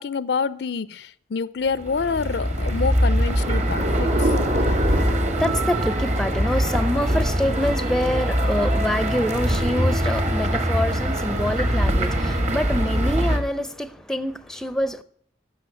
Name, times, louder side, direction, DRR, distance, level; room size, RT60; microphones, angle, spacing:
voice 1, 0.0-4.3, left 5 dB, 70° left, 0.4 m, -27 dB
sound 1, 1.7-13.4, equal, 40° right, 1.5 m, -23 dB
Thunder / Rain, 3.1-13.6, right 1 dB, 70° right, 2.1 m, -32 dB
voice 2, 4.6-15.0, left 1 dB, 5° left, 0.5 m, -26 dB
12.0 x 6.8 x 9.6 m
head